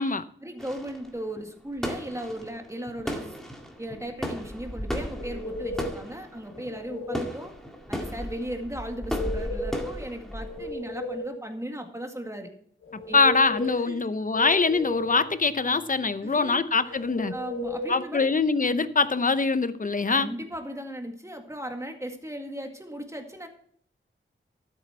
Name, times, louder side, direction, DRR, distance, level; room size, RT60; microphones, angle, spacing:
voice 1, 0.4-3.3 3.8-7.5 7.9-12.5 13.1-13.2 13.9-14.0 16.2-16.6 16.9-17.0 17.3-18.3 20.1-23.5, right 1 dB, 15° right, 2.0 m, -37 dB
sound 1, 0.6-10.7, equal, ahead, 2.0 m, -36 dB
sound 2, 5.1-6.0 6.5-7.3 8.9-9.9 10.3-11.4 12.8-13.8 14.3-15.3 16.9-17.9, left 1 dB, 90° left, 2.3 m, -35 dB
voice 2, 13.1-17.3 17.9-20.3, left 4 dB, 40° left, 0.7 m, -23 dB
12.5 x 8.3 x 4.5 m
wide cardioid pair, 70°, 21 cm